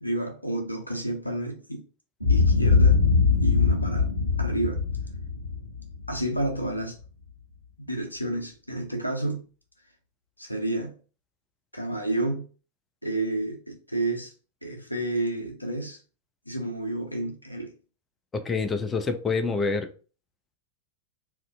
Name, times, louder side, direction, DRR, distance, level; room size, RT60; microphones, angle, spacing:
voice 1, 0.0-1.8 2.3-3.0 3.4-4.1 4.4-4.8 6.1-7.0 7.9-9.4 10.4-10.9 11.7-12.4 13.0-14.3 14.6-16.0 16.5-17.7, right 1 dB, 90° left, 2 dB, 0.5 m, -30 dB
Boom, 2.2-6.5, left 4 dB, 85° right, 0.5 m, -22 dB
voice 2, 18.3-19.9, left 4 dB, 15° left, 7 dB, 0.3 m, -27 dB
2.4 x 2.1 x 2.5 m, 0.37 s
figure-of-eight pair, 90°, 0 cm